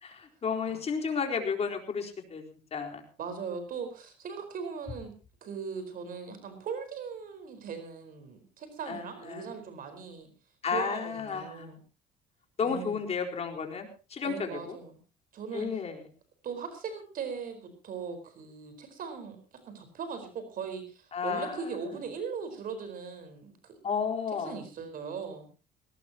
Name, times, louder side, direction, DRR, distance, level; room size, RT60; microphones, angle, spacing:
voice 1, 0.0-2.4 2.7-3.0 8.9-9.5 10.6-11.7 12.6-14.8 15.5-16.0 21.1-21.7 23.8-24.5, left 6 dB, 40° left, 3 dB, 4.4 m, -32 dB
voice 2, 3.2-5.1 5.4-10.3 10.7-11.8 12.6-13.0 14.2-15.0 15.3-15.7 16.4-19.4 19.7-23.7 24.4-25.5, right 6 dB, 55° right, 8 dB, 4.6 m, -39 dB
20.0 x 18.0 x 2.9 m, 0.34 s
cardioid pair, 110°, 17 cm